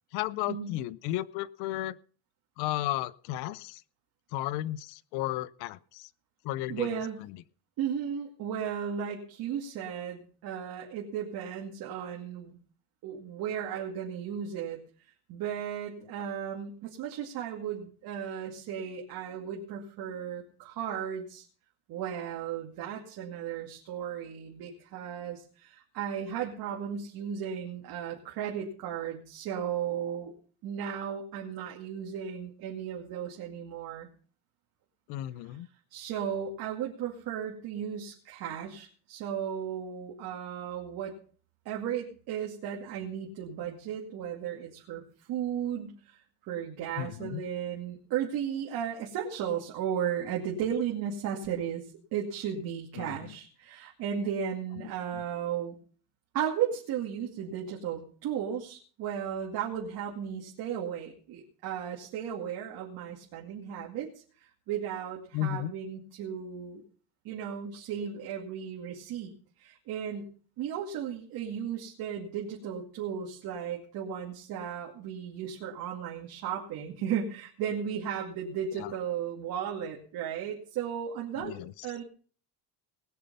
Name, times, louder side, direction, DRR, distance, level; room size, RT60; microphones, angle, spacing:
voice 1, 0.1-2.0 2.6-3.8 4.3-6.1 6.4-7.0 7.3-7.4 35.1-35.7 47.0-47.4 53.0-53.4 55.1-55.2 65.3-65.7 78.7-78.9 81.4-81.9, left 14 dB, 90° left, 19 dB, 0.7 m, -34 dB
voice 2, 6.7-7.2 7.8-12.6 13.0-14.8 15.3-21.4 21.9-30.3 30.6-34.1 35.9-41.1 41.6-46.2 46.5-51.8 52.1-55.8 56.3-64.1 64.4-66.8 67.2-69.3 69.6-70.3 70.6-81.6 81.8-82.0, right 8 dB, 65° right, -2 dB, 2.4 m, -35 dB
19.5 x 6.9 x 5.5 m, 0.43 s
cardioid pair, 155°, 39 cm